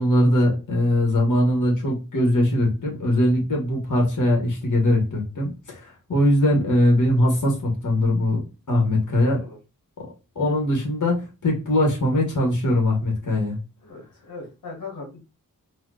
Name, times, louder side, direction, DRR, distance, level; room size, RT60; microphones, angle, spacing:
voice 1, 0.0-8.4 8.7-9.4 10.0-13.6, left 1 dB, 60° left, 0 dB, 1.2 m, -21 dB
voice 2, 13.8-15.2, left 3 dB, 80° left, -2 dB, 1.1 m, -38 dB
4.2 x 2.1 x 2.4 m, 0.29 s
wide cardioid pair, 90°, 34 cm